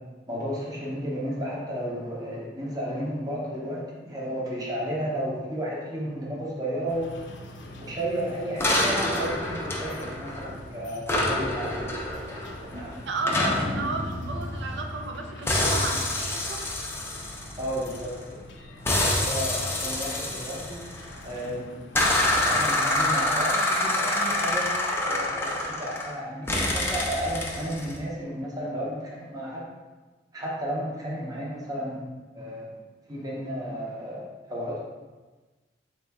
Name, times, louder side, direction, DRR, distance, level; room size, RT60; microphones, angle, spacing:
voice 1, 0.3-7.1 7.8-12.4 12.8-13.0 17.6-18.4 19.2-20.8 21.2-21.9 22.4-29.6 30.3-32.7 33.1-34.8, equal, 20° right, -4 dB, 0.7 m, -33 dB
sound 1, 6.9-22.5, left 1 dB, 90° left, 0.5 m, -46 dB
sound 2, 8.6-10.6 11.1-15.1 15.5-18.2 18.9-21.3 22.0-26.1 26.5-28.0, left 1 dB, 15° left, 0.5 m, -27 dB
voice 2, 9.0-9.3 12.7-16.6, right 3 dB, 75° right, 3 dB, 0.5 m, -34 dB
4.2 x 2.4 x 3.5 m, 1.3 s
head